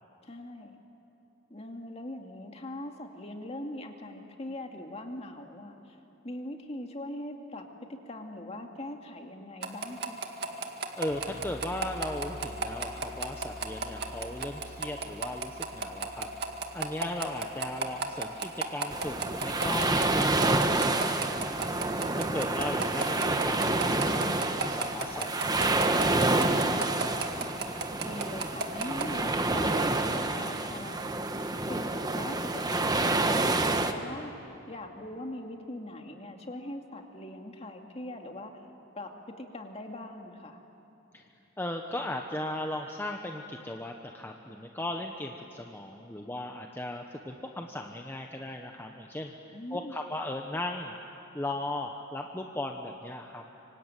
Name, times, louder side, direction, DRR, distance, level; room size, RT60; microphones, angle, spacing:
voice 1, 0.2-0.8 1.5-6.0 6.2-10.2 27.7-31.2 31.6-38.5 38.9-40.6 49.5-50.0, left 1 dB, 30° left, 3 dB, 2.3 m, -41 dB
sound 1, 9.6-29.1, right 4 dB, 55° right, 2.0 m, -33 dB
voice 2, 11.0-16.3 16.7-21.7 22.2-23.6 23.9-26.8 41.1-41.2 41.6-49.3 49.7-50.9 51.3-53.4, left 1 dB, 10° left, 2 dB, 1.1 m, -37 dB
sound 2, 11.1-18.6, left 1 dB, 70° left, 4.4 m, -47 dB
sound 3, 18.9-33.9, right 2 dB, 20° right, 1.2 m, -28 dB
26.0 x 25.0 x 9.1 m, 3.0 s
head